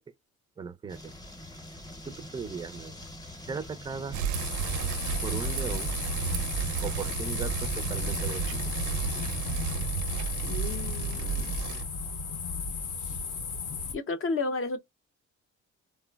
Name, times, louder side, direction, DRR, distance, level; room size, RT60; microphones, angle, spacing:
voice 1, 0.6-1.1 2.1-3.0 3.5-4.2 5.2-5.9 6.8-8.7, right 5 dB, 15° right, 0.3 m, -38 dB
sound 1, 0.9-9.6, left 1 dB, 15° left, 0.8 m, -45 dB
Bicycle, 4.1-11.8, right 8 dB, 80° right, 0.4 m, -33 dB
sound 2, 4.3-13.9, left 4 dB, 80° left, 0.8 m, -34 dB
voice 2, 10.4-11.7 13.9-14.8, left 3 dB, 45° left, 0.6 m, -33 dB
3.1 x 2.0 x 2.2 m
cardioid pair, 90°, 30 cm